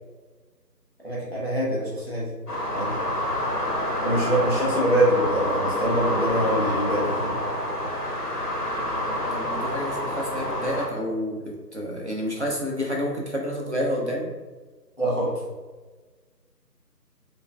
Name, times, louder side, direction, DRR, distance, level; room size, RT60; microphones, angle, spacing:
voice 1, 1.0-2.3 2.8-2.9 4.0-7.4 15.0-15.3, right 1 dB, 40° left, -6 dB, 0.7 m, -24 dB
sound 1, 2.5-10.9, left 1 dB, 65° left, 1.1 m, -27 dB
voice 2, 9.1-14.3, equal, 45° right, -3 dB, 0.6 m, -29 dB
4.2 x 2.5 x 2.3 m, 1.3 s
figure-of-eight pair, 170°, 50 cm